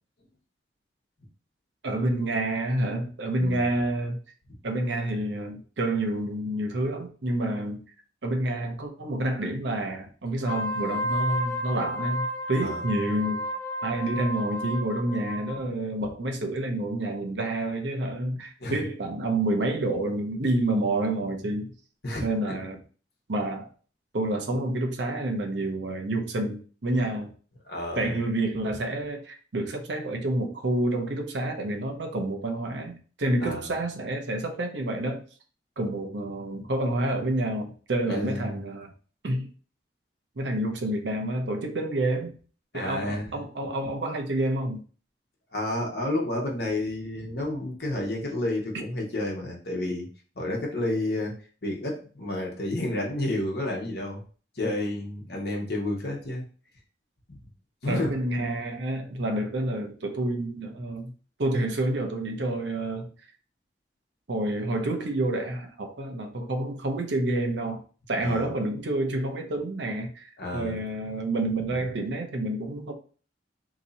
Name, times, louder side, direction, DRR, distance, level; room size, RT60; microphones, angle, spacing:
voice 1, 1.8-4.2 4.6-7.8 8.2-13.5 13.8-21.7 22.2-22.8 23.3-23.7 24.1-27.3 28.0-35.2 35.8-38.9 39.2-39.5 40.4-42.4 42.7-44.8 57.9-61.1 61.4-63.1 64.3-67.8 68.1-72.9, right 1 dB, 80° right, 0.7 m, -28 dB
Wind instrument woodwind instrument, 10.4-15.6, equal, 5° left, 0.8 m, -32 dB
voice 2, 22.0-22.5 27.7-28.2 33.4-33.7 38.1-38.6 42.7-43.4 45.5-50.1 50.3-51.3 51.6-54.2 54.5-56.5 57.3-57.4 57.8-58.1 68.2-68.5 70.4-70.8, left 1 dB, 60° left, 1.0 m, -30 dB
2.9 x 2.7 x 3.9 m
head